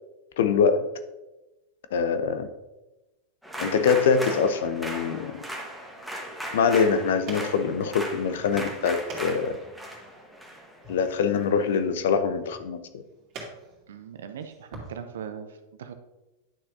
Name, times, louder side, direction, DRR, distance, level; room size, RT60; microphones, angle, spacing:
voice 1, 0.4-0.9 1.9-2.5 3.6-5.4 6.5-9.6 10.9-13.0, left 6 dB, 55° left, 11 dB, 0.6 m, -24 dB
sound 1, 3.4-11.8, right 1 dB, ahead, 1.3 m, -38 dB
sound 2, 6.4-14.9, right 2 dB, 35° right, 2.3 m, -46 dB
voice 2, 13.9-15.9, right 7 dB, 60° right, 9 dB, 0.7 m, -40 dB
10.0 x 6.4 x 2.7 m, 1.0 s
figure-of-eight pair, 90°, 0 cm